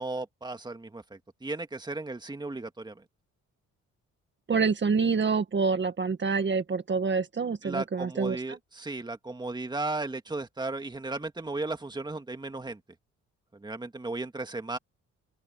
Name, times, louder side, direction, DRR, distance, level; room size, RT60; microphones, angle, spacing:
voice 1, 0.0-3.0 7.6-12.8 13.5-14.8, right 2 dB, 15° right, 2.2 m, -35 dB
voice 2, 4.5-8.4, right 5 dB, 40° right, 1.9 m, -26 dB
open air
cardioid pair, 90°, 30 cm